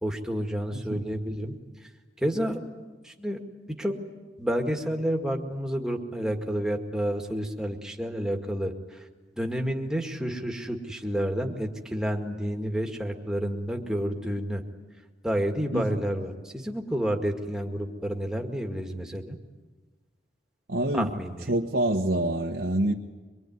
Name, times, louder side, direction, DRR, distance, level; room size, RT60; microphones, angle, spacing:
voice 1, 0.0-1.6 1.8-1.9 2.2-2.6 3.0-3.4 3.8-4.0 4.4-9.1 9.4-14.6 15.2-19.4 20.9-21.5, equal, 5° right, 2 dB, 2.0 m, -30 dB
voice 2, 0.7-1.0 15.7-15.9 20.7-21.1 21.5-22.9, right 1 dB, 65° right, 0 dB, 1.3 m, -26 dB
25.0 x 23.0 x 9.5 m, 1.3 s
head